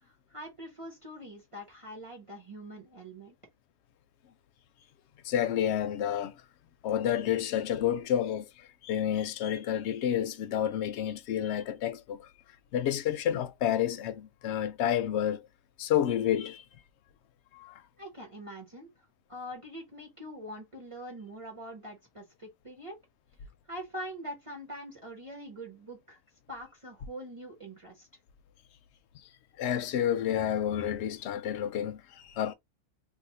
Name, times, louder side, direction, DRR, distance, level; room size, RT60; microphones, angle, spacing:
voice 1, 0.0-3.3 18.0-23.0 23.7-26.2 26.5-28.1, equal, 30° right, 1.0 m, -44 dB
voice 2, 5.2-6.3 6.8-8.5 8.8-12.3 12.7-15.4 15.8-16.6 17.5-17.8 29.6-32.5, left 10 dB, 65° left, 0.8 m, -29 dB
2.6 x 2.5 x 3.9 m
omnidirectional pair, 1.3 m